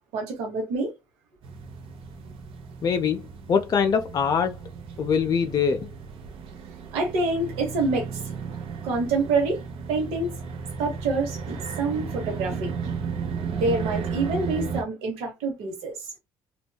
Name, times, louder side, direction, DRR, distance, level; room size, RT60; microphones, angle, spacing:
voice 1, 0.1-0.9 6.9-8.3 8.8-9.6 9.9-10.4 10.8-13.0 13.5-16.1, right 3 dB, 90° right, 0.9 m, -27 dB
sound 1, 1.4-14.8, right 6 dB, 65° right, 0.6 m, -34 dB
voice 2, 2.8-3.2 3.5-4.6 5.0-5.9, left 6 dB, 40° left, 0.4 m, -23 dB
2.6 x 2.2 x 2.2 m
supercardioid pair, 75°, 10 cm